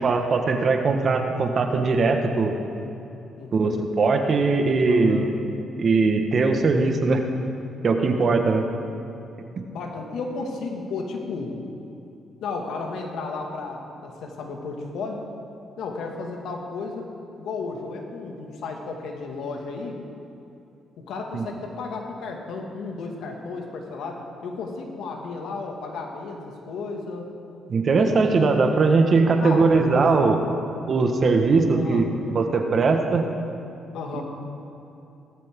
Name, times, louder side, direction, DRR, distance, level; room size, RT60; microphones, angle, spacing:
voice 1, 0.0-2.6 3.5-5.3 5.8-7.2 7.8-8.6 21.3-21.4 27.7-30.4 30.9-33.3 34.1-34.2, right 4 dB, 50° right, 4 dB, 1.5 m, -20 dB
voice 2, 3.4-3.9 4.9-5.3 9.7-11.5 12.4-15.2 15.8-17.1 17.4-20.0 21.1-27.3 29.4-30.1 31.7-32.0 33.9-34.2, left 4 dB, 80° left, 1 dB, 2.1 m, -33 dB
18.0 x 14.0 x 3.8 m, 2.8 s
cardioid pair, 90°, 0 cm